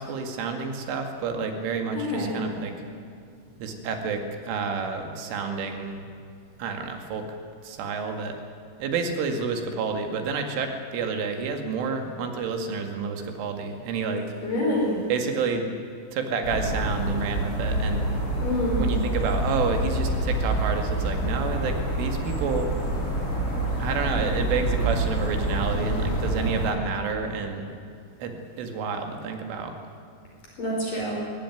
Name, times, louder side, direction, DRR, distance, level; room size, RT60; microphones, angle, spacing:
voice 1, 0.0-2.7 3.6-6.0 6.6-7.4 7.6-8.4 8.8-14.3 15.1-15.7 16.1-18.1 18.8-22.7 23.8-27.7 28.2-29.8, right 5 dB, 80° right, 5 dB, 4.6 m, -29 dB
voice 2, 2.0-2.4 14.4-15.0 18.4-18.8 30.6-31.2, left 1 dB, 45° left, -3 dB, 6.0 m, -26 dB
sound 1, 16.4-26.7, right 1 dB, 15° left, 5.5 m, -27 dB
22.5 x 19.0 x 9.3 m, 2.5 s
omnidirectional pair, 5.7 m